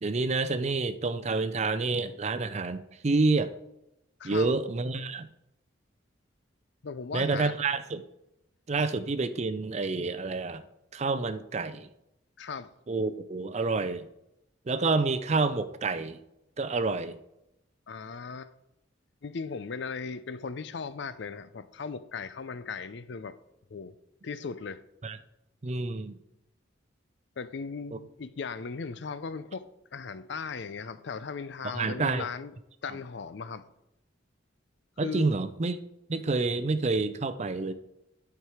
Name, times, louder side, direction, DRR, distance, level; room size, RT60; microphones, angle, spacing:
voice 1, 0.0-3.5 4.2-5.3 7.1-8.0 8.7-10.6 10.9-11.9 12.9-14.1 14.7-16.2 16.6-17.2 25.0-25.2 25.6-26.2 27.9-28.0 31.7-32.3 35.0-35.8 36.1-37.7, right 3 dB, 35° right, 0.5 m, -28 dB
voice 2, 4.2-4.5 6.8-7.5 12.4-12.7 17.9-18.5 19.2-23.4 23.7-24.0 24.2-24.8 27.4-29.7 29.9-32.5 32.8-33.7 35.0-35.3, left 5 dB, 60° left, 0.5 m, -37 dB
11.0 x 4.7 x 4.9 m
head